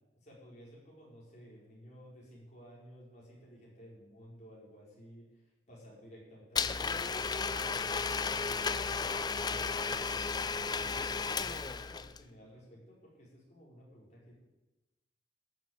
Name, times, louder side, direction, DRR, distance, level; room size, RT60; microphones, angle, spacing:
voice 1, 0.2-5.4 5.7-8.8 9.5-10.3 10.8-11.1 11.4-14.3, equal, 40° left, -5 dB, 5.0 m, -54 dB
Domestic sounds home sounds, 6.6-12.2, left 5 dB, 20° left, 0.4 m, -34 dB
13.5 x 7.1 x 9.5 m, 1.1 s
head